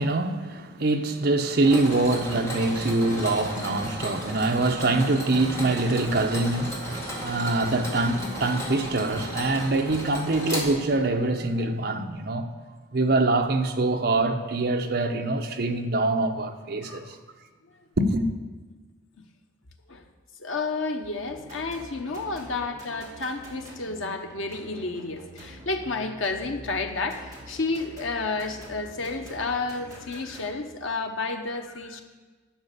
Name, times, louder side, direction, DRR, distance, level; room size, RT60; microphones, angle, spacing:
voice 1, 0.0-12.5 12.9-17.2 18.0-18.3, right 2 dB, 55° right, 0.8 m, -24 dB
Mechanisms, 1.6-11.2, equal, 15° left, 1.9 m, -35 dB
voice 2, 16.8-17.2 19.9-20.0 20.4-32.0, left 3 dB, 85° left, 1.0 m, -31 dB
sound 1, 21.2-30.5, equal, 15° right, 2.2 m, -46 dB
10.5 x 6.5 x 6.7 m
head